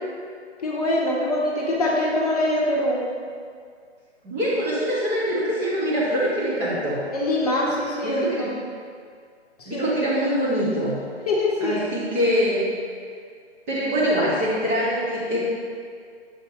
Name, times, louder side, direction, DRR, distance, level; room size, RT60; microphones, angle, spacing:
voice 1, 0.6-3.0 7.1-8.5 9.6-9.9 11.3-11.8, left 1 dB, 35° left, -3 dB, 0.9 m, -23 dB
voice 2, 4.2-7.0 8.0-8.5 9.7-11.0 11.6-12.7 13.7-15.5, equal, 15° right, -9 dB, 0.7 m, -24 dB
6.8 x 3.9 x 3.9 m, 2.1 s
figure-of-eight pair, 140°, 34 cm